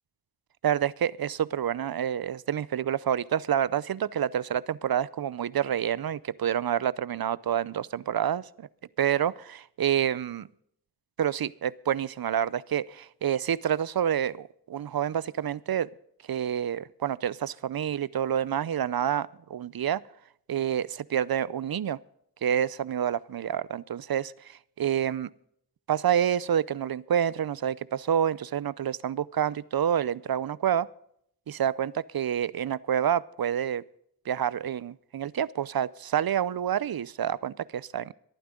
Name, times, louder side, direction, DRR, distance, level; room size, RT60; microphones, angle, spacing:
voice 1, 0.6-8.7 9.0-10.5 11.2-15.9 16.3-20.0 20.5-22.0 22.4-25.3 25.9-30.9 31.5-33.8 34.3-38.1, right 9 dB, 60° right, 20 dB, 0.6 m, -28 dB
24.0 x 9.4 x 3.7 m, 0.69 s
cardioid pair, 45°, 40 cm